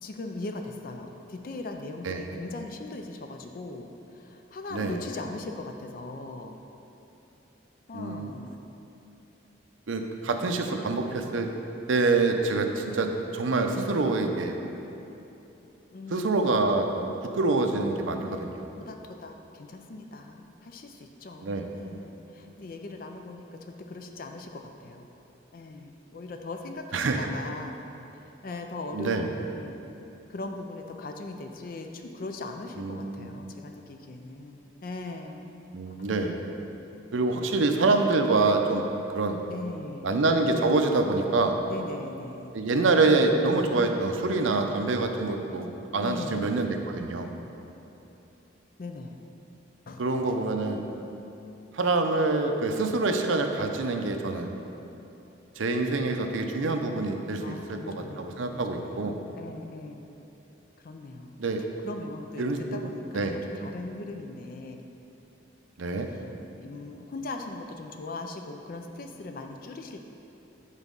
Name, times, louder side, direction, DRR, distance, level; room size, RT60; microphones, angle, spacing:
voice 1, 0.0-6.6 7.9-8.6 15.9-16.5 18.8-25.1 25.5-27.8 28.2-29.7 30.3-35.5 39.5-40.1 41.7-42.6 46.0-46.5 48.8-49.2 49.9-50.3 57.4-60.2 60.8-61.3 61.8-64.8 65.9-66.3 66.6-70.1, left 2 dB, 45° left, 4 dB, 0.4 m, -40 dB
voice 2, 7.9-8.3 9.9-11.5 11.9-14.6 16.1-17.1 17.3-18.7 21.4-21.7 26.9-27.2 28.9-29.3 32.8-33.3 35.7-36.4 37.1-38.9 39.1-39.4 40.0-41.5 42.5-47.3 50.0-50.8 51.7-54.5 55.6-59.2 61.4-61.6 62.4-62.6 63.1-63.3 65.8-66.1, right 3 dB, 85° right, 5 dB, 0.6 m, -26 dB
8.3 x 4.1 x 5.2 m, 3.0 s
head